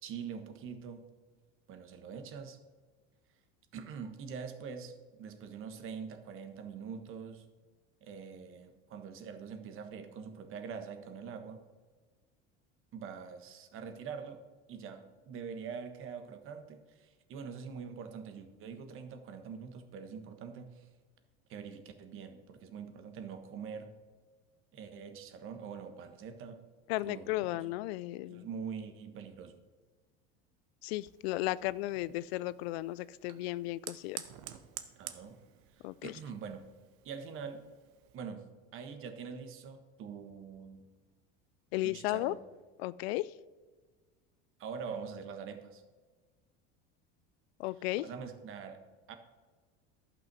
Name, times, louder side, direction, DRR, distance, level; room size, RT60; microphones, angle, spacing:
voice 1, 0.0-1.0 1.7-2.6 3.7-7.5 8.0-11.6 12.9-14.4 14.7-20.9 21.5-23.9 24.7-26.6 27.0-27.7 28.2-29.6 35.0-35.4 36.0-36.6 37.0-37.6 38.1-38.4 38.7-40.8 41.8-42.4 44.6-45.8 48.0-48.8 49.1-49.2, right 6 dB, 45° right, 7 dB, 1.3 m, -44 dB
voice 2, 26.9-28.5 30.8-34.2 35.8-36.1 41.7-42.3 42.8-43.3 47.6-48.0, left 18 dB, 90° left, 19 dB, 0.5 m, -34 dB
Fire, 30.9-38.2, right 12 dB, 65° right, 1.0 m, -50 dB
11.5 x 5.9 x 6.1 m, 1.4 s
supercardioid pair, 140°, 30 cm